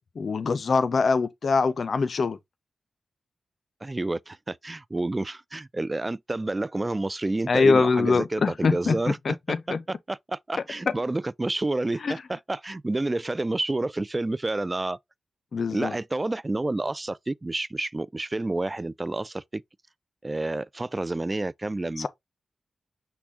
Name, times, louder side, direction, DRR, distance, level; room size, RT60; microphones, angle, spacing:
voice 1, 0.2-2.4 7.5-9.8 12.0-12.1 15.5-15.9 22.0-22.1, left 4 dB, 65° left, 0.6 m, -23 dB
voice 2, 3.8-9.2 9.5-15.0 15.7-19.6 20.2-22.1, right 2 dB, 30° right, 0.3 m, -29 dB
6.0 x 2.2 x 3.6 m
cardioid pair, 45°, 0 cm